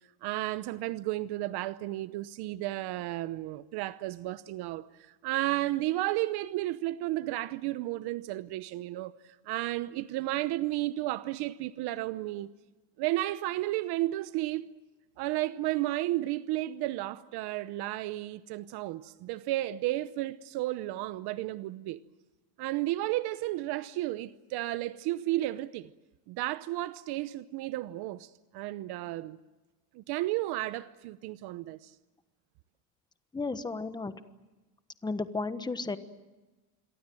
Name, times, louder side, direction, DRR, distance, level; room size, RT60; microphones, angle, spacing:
voice 1, 0.2-12.5 13.0-14.7 15.2-22.0 22.6-25.9 26.3-29.4 29.9-31.9, right 16 dB, 60° right, 0.9 m, -33 dB
voice 2, 33.3-34.1 35.0-36.0, left 3 dB, 10° left, 1.2 m, -33 dB
27.5 x 23.0 x 7.8 m
cardioid pair, 140°, 43 cm